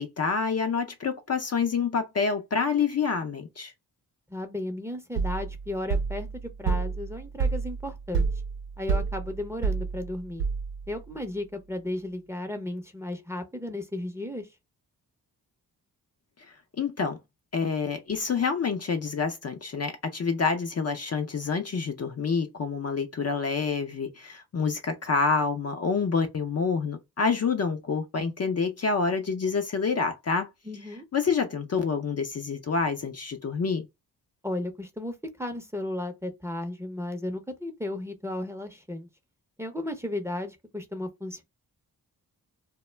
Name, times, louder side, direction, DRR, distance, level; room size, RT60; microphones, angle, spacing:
voice 1, 0.0-3.7 16.8-17.2 17.5-30.5 31.1-33.9, left 5 dB, 40° left, 0.5 m, -27 dB
voice 2, 4.3-6.3 6.6-8.3 8.8-10.4 10.9-14.5 30.6-31.1 34.4-39.1 39.6-41.4, left 1 dB, 5° right, 0.6 m, -34 dB
sound 1, 5.2-11.0, right 5 dB, 75° right, 0.6 m, -29 dB
2.2 x 2.0 x 3.2 m
supercardioid pair, 40°, 41 cm